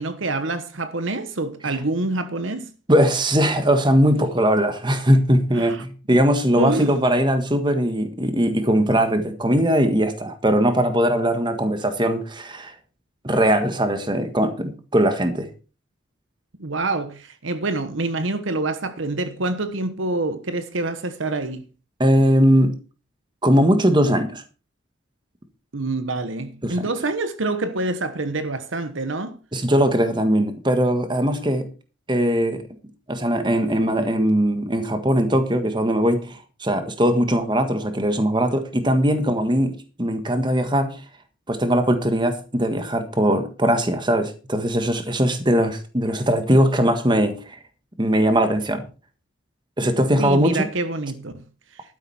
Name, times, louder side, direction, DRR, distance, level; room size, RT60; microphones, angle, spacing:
voice 1, 0.0-2.7 5.5-5.8 6.6-6.9 16.6-21.7 25.7-29.4 50.2-51.4, right 2 dB, 70° right, 1.1 m, -26 dB
voice 2, 2.9-12.7 13.2-15.5 22.0-22.7 23.4-24.4 26.6-26.9 29.5-31.7 32.1-32.6 33.1-41.0 41.5-47.6 48.0-48.8 49.8-50.6, equal, 20° right, 1.6 m, -20 dB
12.0 x 10.0 x 4.4 m
head